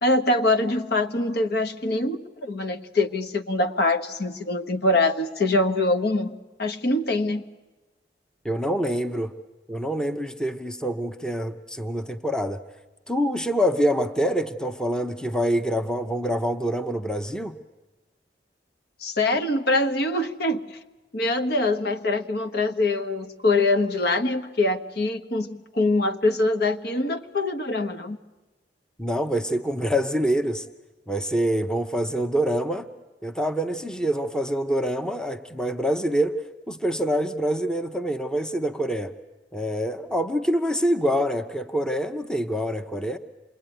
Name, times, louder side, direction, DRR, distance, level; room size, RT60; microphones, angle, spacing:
voice 1, 0.0-7.4 19.0-20.8 21.1-28.2, left 2 dB, 60° left, 6 dB, 1.2 m, -24 dB
voice 2, 8.4-9.3 9.7-12.6 13.1-17.6 29.0-30.6 31.1-32.9 33.2-36.4 36.7-39.1 39.5-43.2, equal, 5° left, 7 dB, 0.8 m, -25 dB
27.0 x 21.5 x 9.2 m, 1.1 s
head